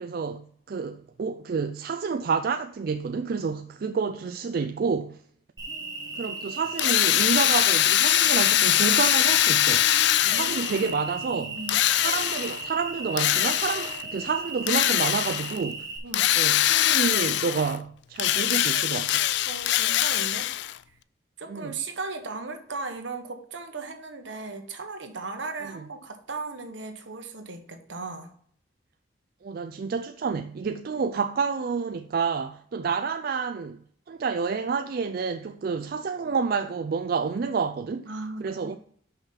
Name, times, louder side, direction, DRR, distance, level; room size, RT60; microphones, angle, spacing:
voice 1, 0.0-5.2 6.1-9.9 10.2-11.6 12.0-15.9 16.4-19.2 21.5-21.8 25.7-25.8 29.4-33.8 34.1-38.1 38.4-38.7, right 5 dB, 50° right, 0.3 m, -29 dB
Cricket, 5.6-16.0, right 3 dB, 20° right, 1.5 m, -36 dB
Drill, 6.8-10.9 11.7-12.6 13.2-14.0 14.7-15.6 16.1-17.8 18.2-20.8, left 13 dB, 60° left, 0.3 m, -23 dB
voice 2, 10.3-10.9 11.3-11.8 16.0-16.3 19.5-20.5 20.9-21.0 21.4-28.3 38.1-38.8, right 3 dB, 70° right, 1.2 m, -37 dB
5.7 x 5.6 x 5.6 m
head